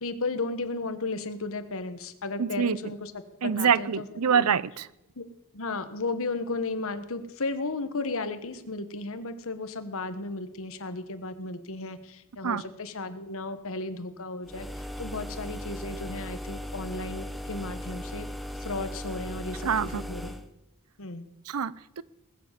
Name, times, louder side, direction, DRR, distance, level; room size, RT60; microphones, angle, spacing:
voice 1, 0.0-3.1 3.4-4.4 5.1-5.2 5.5-18.3 18.5-20.3 21.0-21.3, left 3 dB, 65° left, 1.4 m, -34 dB
voice 2, 2.4-2.8 3.4-4.9 12.4-12.6 19.6-20.0 21.5-22.0, right 7 dB, 80° right, 0.6 m, -25 dB
sound 1, 14.5-20.5, equal, ahead, 0.9 m, -37 dB
20.0 x 7.5 x 8.1 m
head